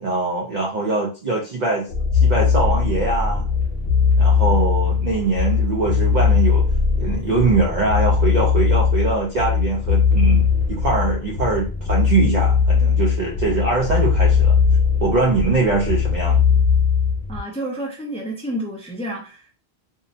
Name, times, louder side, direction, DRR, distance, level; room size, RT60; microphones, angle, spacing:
voice 1, 0.0-1.9 2.1-3.5 4.2-6.6 7.0-14.5 15.0-16.4, right 3 dB, 50° right, -3 dB, 0.6 m, -22 dB
sound 1, 1.9-17.4, left 6 dB, 70° left, 0.8 m, -19 dB
voice 2, 17.3-19.5, right 1 dB, 10° left, 0 dB, 0.4 m, -30 dB
2.7 x 2.0 x 2.7 m, 0.35 s
omnidirectional pair, 1.1 m